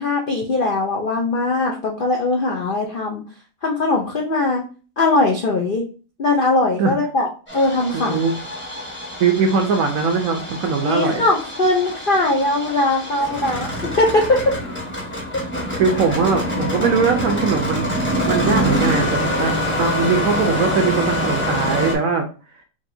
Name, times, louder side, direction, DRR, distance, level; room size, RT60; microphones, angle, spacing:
voice 1, 0.0-3.2 3.6-4.7 5.0-5.9 6.2-7.3 7.5-8.2 10.8-13.7 14.0-14.6, left 2 dB, 80° left, -1 dB, 0.4 m, -20 dB
Engine starting, 7.5-21.9, equal, 10° left, 0.8 m, -25 dB
voice 2, 7.9-8.3 9.2-11.2 15.8-17.9 18.3-22.3, right 5 dB, 70° right, 3 dB, 0.8 m, -20 dB
5.0 x 2.8 x 2.7 m, 0.36 s
omnidirectional pair, 1.9 m